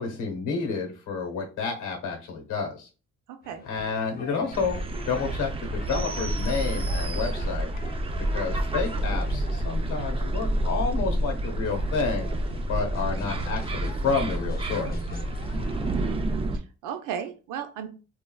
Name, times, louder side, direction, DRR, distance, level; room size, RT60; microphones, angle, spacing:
voice 1, 0.0-2.9 3.6-4.8 5.1-7.7 8.3-12.3 12.7-14.9, left 5 dB, 85° left, 2 dB, 1.1 m, -30 dB
voice 2, 3.3-3.6 16.0-16.2 16.5-17.9, right 8 dB, 85° right, 7 dB, 0.6 m, -35 dB
sound 1, 3.4-16.0, left 3 dB, 30° left, 0.6 m, -44 dB
sound 2, 4.5-16.6, right 1 dB, 20° right, 0.3 m, -29 dB
3.2 x 2.3 x 2.2 m, 0.34 s
cardioid pair, 90°, 30 cm